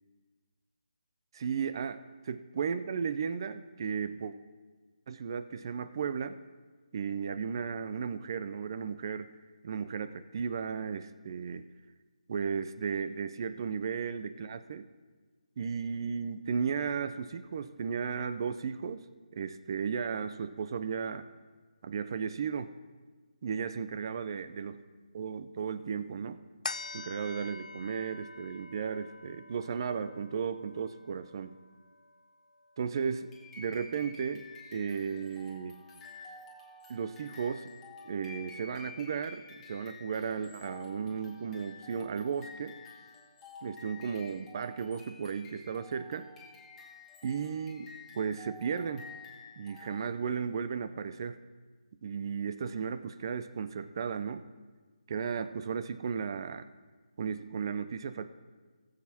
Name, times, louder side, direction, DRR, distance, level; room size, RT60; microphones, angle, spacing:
voice 1, 1.3-4.3 5.1-6.4 6.9-9.3 9.6-11.7 12.3-14.9 15.6-19.0 19.3-21.3 21.8-22.7 23.4-24.8 25.1-26.4 26.9-31.6 32.8-34.5 34.7-35.8 36.9-37.7 38.0-42.8 43.6-46.3 47.2-49.1 49.6-51.4 52.0-54.4 55.1-56.7 57.2-58.3, right 6 dB, 35° right, 12 dB, 0.5 m, -35 dB
sound 1, 26.6-33.4 33.9-34.0, left 3 dB, 75° left, 0.4 m, -46 dB
sound 2, 33.3-50.4, left 4 dB, 10° left, 1.2 m, -51 dB
19.0 x 7.4 x 2.8 m, 1.4 s
figure-of-eight pair, 155°, 4 cm